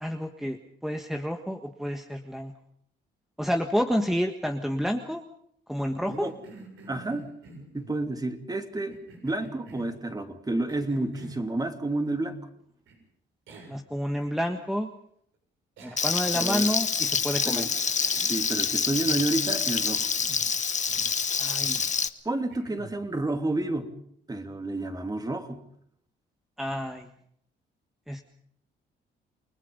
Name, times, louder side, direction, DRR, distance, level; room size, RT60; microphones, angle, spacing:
voice 1, 0.0-2.5 3.4-5.2 5.7-6.3 13.7-14.9 15.8-17.7 21.4-21.8 26.6-27.1 28.1-28.2, equal, ahead, 4 dB, 1.6 m, -29 dB
Cough, 5.8-8.0 8.7-10.0 10.7-11.5 12.9-13.0 13.5-13.8 14.2-14.3 15.8-16.3 16.9-17.3 17.7-19.1 19.4-20.5 20.9-21.2 21.6-21.9 22.5-23.0, right 3 dB, 80° right, 7.4 m, -49 dB
voice 2, 6.9-7.3 7.7-9.0 9.2-12.4 16.3-16.7 17.4-17.7 18.3-20.1 22.2-23.9 24.3-25.6, right 2 dB, 20° right, 6 dB, 2.9 m, -30 dB
Frying (food), 16.0-22.1, left 6 dB, 35° left, 1.3 m, -27 dB
29.5 x 20.0 x 5.5 m, 0.67 s
cardioid pair, 90°, 20 cm